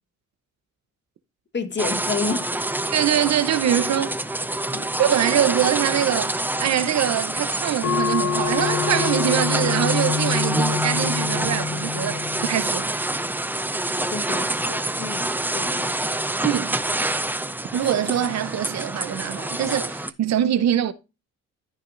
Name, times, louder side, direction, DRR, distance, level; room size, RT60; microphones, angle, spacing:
voice 1, 1.5-2.5 4.7-4.9 14.1-16.0, left 4 dB, 35° left, 1.4 m, -30 dB
sound 1, 1.8-20.1, right 1 dB, 5° right, 0.6 m, -26 dB
voice 2, 2.9-4.1 5.0-12.9 16.4-16.8 17.7-20.9, right 10 dB, 60° right, 0.8 m, -23 dB
sound 2, 7.8-12.9, left 7 dB, 65° left, 1.5 m, -27 dB
13.5 x 6.0 x 2.6 m
cardioid pair, 90°, 30 cm